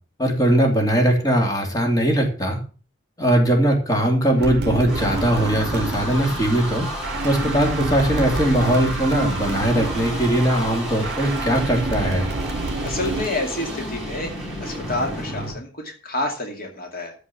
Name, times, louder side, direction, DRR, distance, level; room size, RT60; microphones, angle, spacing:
voice 1, 0.2-2.6 3.2-6.9 7.2-12.3, right 1 dB, 20° left, 1 dB, 2.9 m, -20 dB
sound 1, 4.3-15.5, equal, ahead, 5.4 m, -32 dB
sound 2, 4.4-13.3, right 3 dB, 60° right, 0.7 m, -29 dB
voice 2, 12.8-14.3 14.6-17.1, left 2 dB, 55° left, 2 dB, 2.5 m, -28 dB
14.0 x 5.2 x 7.2 m, 0.38 s
head